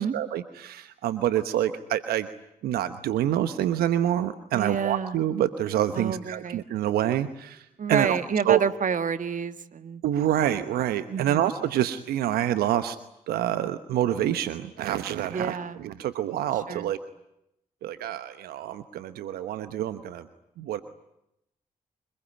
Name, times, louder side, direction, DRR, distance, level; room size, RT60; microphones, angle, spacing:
voice 1, 0.0-2.3 2.6-8.2 8.4-8.6 10.0-13.0 13.3-17.0 17.8-20.3 20.6-20.8, right 11 dB, 80° right, 12 dB, 1.1 m, -27 dB
voice 2, 4.5-5.2 5.9-6.6 7.8-10.0 11.1-11.5 15.3-15.8 16.7-16.9, right 6 dB, 55° right, 12 dB, 1.7 m, -28 dB
25.5 x 21.5 x 9.9 m, 0.83 s
hypercardioid pair, 40°, 16 cm